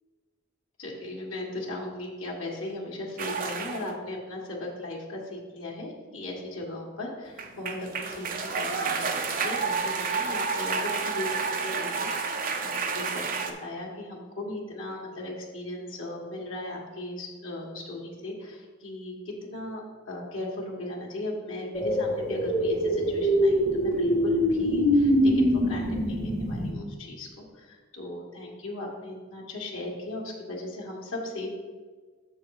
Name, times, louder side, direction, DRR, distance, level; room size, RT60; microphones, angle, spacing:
voice 1, 0.8-8.3 8.5-13.3 13.6-31.5, left 1 dB, 90° left, -3 dB, 1.6 m, -37 dB
sound 1, 3.2-3.9 7.3-13.5, right 5 dB, 45° right, 0.7 m, -30 dB
sound 2, 21.7-26.7, equal, 60° left, 2.1 m, -24 dB
7.1 x 6.1 x 4.7 m, 1.5 s
head